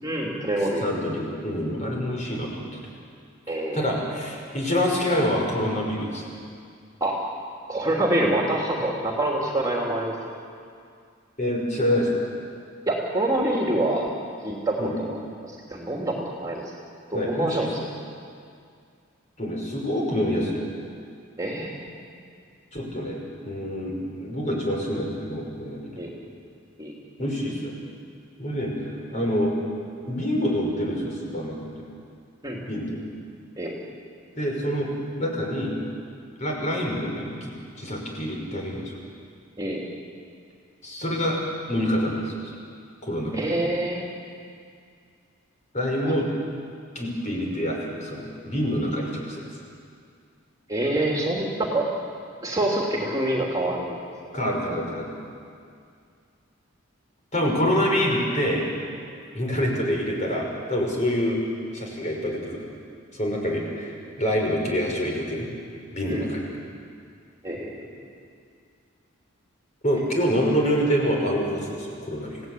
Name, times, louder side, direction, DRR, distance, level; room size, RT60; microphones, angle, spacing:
voice 1, 0.0-0.8 3.5-3.9 7.0-7.2 7.7-10.1 12.9-14.1 14.4-15.2 15.4-16.6 17.1-17.7 21.4-21.9 26.0-26.1 26.8-26.9 32.4-32.6 33.6-33.7 39.6-39.8 43.3-44.0 46.0-46.1 50.7-51.9 52.4-54.0 63.5-63.6 66.1-66.2 67.4-68.1, right 1 dB, 15° right, -2 dB, 3.0 m, -26 dB
voice 2, 0.8-2.7 3.7-6.2 11.4-12.3 14.8-14.9 17.1-17.7 19.4-20.6 22.7-26.0 27.2-27.7 28.4-29.5 30.1-31.9 32.6-33.0 34.4-34.9 35.2-35.7 36.4-38.9 40.8-41.4 41.7-42.5 43.0-43.5 45.7-46.3 46.9-49.4 54.3-55.1 57.3-58.6 59.3-61.4 61.7-62.6 63.1-65.5 65.9-66.5 67.6-67.7 69.8-72.4, equal, 35° left, -1 dB, 5.7 m, -26 dB
30.0 x 17.0 x 9.4 m, 2.3 s
head